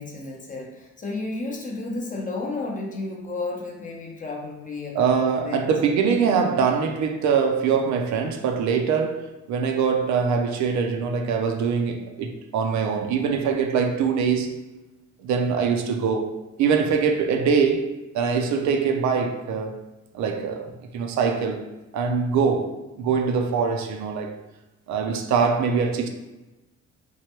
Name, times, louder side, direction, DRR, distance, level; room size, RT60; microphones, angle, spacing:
voice 1, 0.0-5.7, left 3 dB, 25° left, 0.6 m, -32 dB
voice 2, 4.9-14.6 15.2-16.3 16.6-19.8 20.1-24.4 24.9-26.1, right 6 dB, 70° right, 0.4 m, -23 dB
3.1 x 2.1 x 2.9 m
cardioid pair, 115°, 30 cm